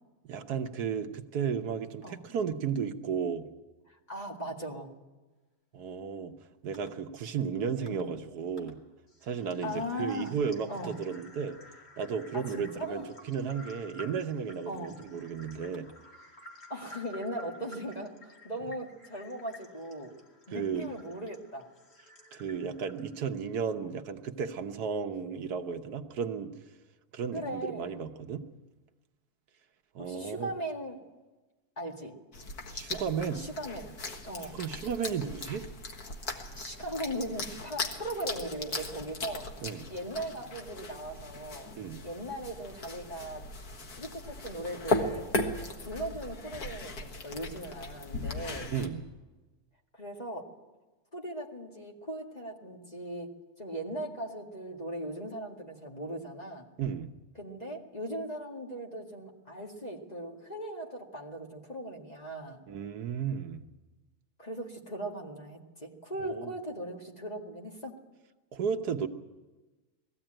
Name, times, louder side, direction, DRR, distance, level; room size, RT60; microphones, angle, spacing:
voice 1, 0.2-3.5 5.7-6.3 6.6-8.8 9.2-11.6 12.0-15.9 20.5-20.9 22.3-26.5 27.1-28.4 29.9-30.5 32.7-33.5 34.5-35.7 39.6-39.8 41.8-42.1 48.7-49.0 56.8-57.1 62.7-63.6 66.2-66.5 68.5-69.1, right 6 dB, 80° right, 7 dB, 1.5 m, -34 dB
voice 2, 3.9-4.9 7.9-8.1 9.6-10.4 10.7-11.0 12.3-13.1 14.7-15.0 16.7-20.1 20.5-21.7 27.3-28.0 30.0-31.0 31.8-32.1 33.3-33.9 34.2-34.6 36.5-39.5 39.9-41.7 42.0-43.5 44.0-45.2 45.5-48.7 50.0-50.5 51.1-56.7 57.4-62.6 64.4-68.0, right 1 dB, 25° left, 0 dB, 2.1 m, -39 dB
sound 1, 6.7-6.9 7.9-8.0 8.6-8.7 9.1-23.3, left 1 dB, 40° left, 2.6 m, -53 dB
sound 2, 32.3-48.9, left 2 dB, 70° left, 2.1 m, -38 dB
20.5 x 15.0 x 8.9 m, 1.2 s
omnidirectional pair, 1.7 m